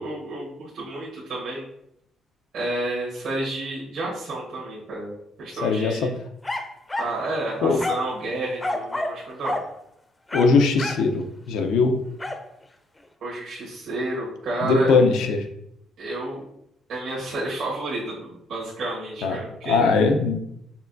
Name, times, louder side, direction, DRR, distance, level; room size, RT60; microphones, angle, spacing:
voice 1, 0.0-1.7 2.5-6.1 7.0-9.6 13.2-14.9 16.0-16.4 16.9-19.8, right 2 dB, 75° right, -8 dB, 1.3 m, -30 dB
voice 2, 5.6-6.1 7.6-7.8 10.3-12.0 14.6-15.5 19.2-19.4 19.6-20.4, left 4 dB, 90° left, 5 dB, 0.5 m, -20 dB
sound 1, 6.4-7.2 7.8-8.1 8.6-9.2 9.4-9.7 10.3-11.1 12.2-12.4, left 2 dB, 15° left, 0.4 m, -29 dB
5.5 x 2.2 x 2.5 m, 0.77 s
cardioid pair, 90°, 0 cm